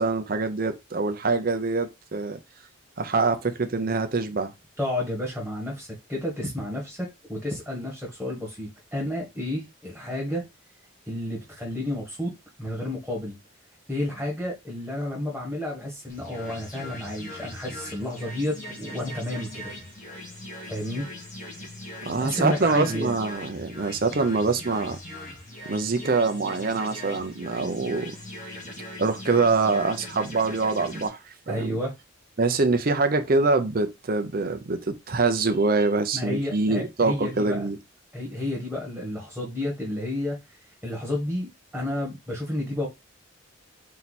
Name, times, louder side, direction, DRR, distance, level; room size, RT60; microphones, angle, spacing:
voice 1, 0.0-2.4 3.0-4.5 22.0-25.0 25.7-28.1 29.0-31.8 32.4-37.8, right 3 dB, 45° right, 0.6 m, -24 dB
voice 2, 4.8-10.4 11.1-13.4 13.9-19.7 20.7-21.0 22.2-23.2 31.5-31.9 36.1-37.7 38.1-40.4 40.8-42.9, left 1 dB, ahead, 1.6 m, -31 dB
sound 1, 16.1-31.1, left 1 dB, 40° left, 1.9 m, -40 dB
4.5 x 2.8 x 4.1 m
head